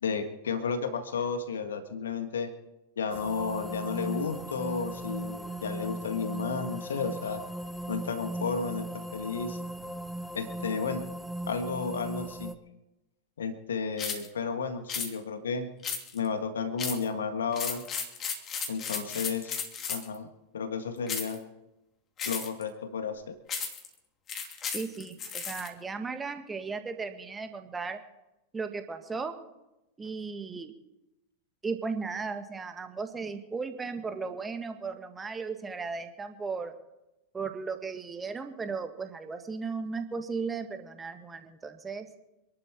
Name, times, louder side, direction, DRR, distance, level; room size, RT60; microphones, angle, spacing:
voice 1, 0.0-2.5 3.0-7.4 7.9-9.6 10.3-11.1 11.5-12.5 13.4-15.7 16.1-17.8 18.7-19.6 19.9-21.4 22.2-23.3, left 5 dB, 65° left, 9 dB, 1.6 m, -32 dB
sound 1, 3.1-12.6, right 1 dB, ahead, 1.1 m, -38 dB
sound 2, 14.0-14.3 14.9-15.1 15.8-16.3 16.8-17.1 17.5-20.1 21.1-21.4 22.2-22.6 23.5-23.9 24.3-25.7, left 6 dB, 30° left, 2.8 m, -34 dB
voice 2, 24.7-28.0 28.5-29.3 30.0-30.7 31.6-36.7 37.3-42.1, right 4 dB, 15° right, 7 dB, 1.8 m, -36 dB
26.0 x 11.5 x 4.6 m, 0.95 s
figure-of-eight pair, 90°, 0 cm